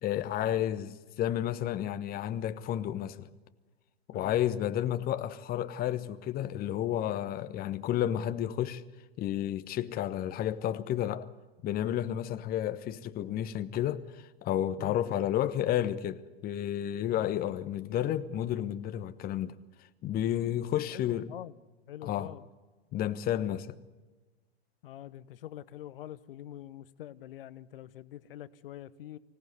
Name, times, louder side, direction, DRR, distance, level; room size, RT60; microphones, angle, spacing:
voice 1, 0.0-3.3 4.1-8.8 9.2-11.3 11.6-19.5 20.0-21.3 22.0-22.3 22.9-23.7, left 11 dB, 30° left, 1.2 m, -31 dB
voice 2, 4.1-4.4 14.8-15.0 17.1-17.3 20.9-21.5 21.9-22.4 24.8-29.2, left 12 dB, 60° left, 1.1 m, -45 dB
25.0 x 18.0 x 9.6 m
figure-of-eight pair, 95°, 32 cm